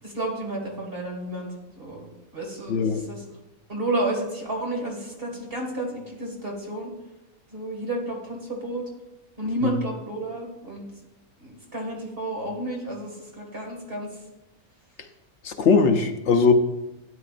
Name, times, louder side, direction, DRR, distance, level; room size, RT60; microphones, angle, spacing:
voice 1, 0.0-2.1 2.3-3.2 3.7-6.9 7.5-8.8 9.4-10.9 11.4-14.2, right 1 dB, 40° right, 0 dB, 2.2 m, -31 dB
voice 2, 2.7-3.0 9.6-9.7 15.4-16.5, left 5 dB, 60° left, 5 dB, 0.9 m, -20 dB
12.5 x 9.4 x 2.5 m, 0.99 s
omnidirectional pair, 1.5 m